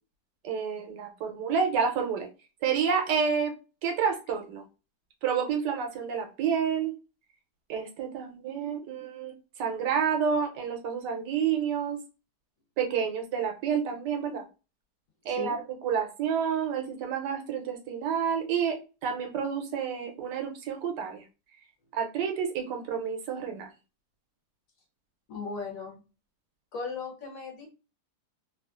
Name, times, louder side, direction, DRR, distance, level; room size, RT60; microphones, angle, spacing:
voice 1, 0.4-2.3 2.6-3.5 3.8-4.6 5.2-6.9 7.7-9.3 9.6-12.0 12.8-14.4 15.2-15.6 15.8-21.2 21.9-23.7, right 7 dB, 80° right, 4 dB, 1.2 m, -29 dB
voice 2, 15.3-15.6 25.3-26.0 26.7-27.7, left 4 dB, 60° left, 1 dB, 1.2 m, -37 dB
3.1 x 2.4 x 2.3 m, 0.31 s
omnidirectional pair, 1.8 m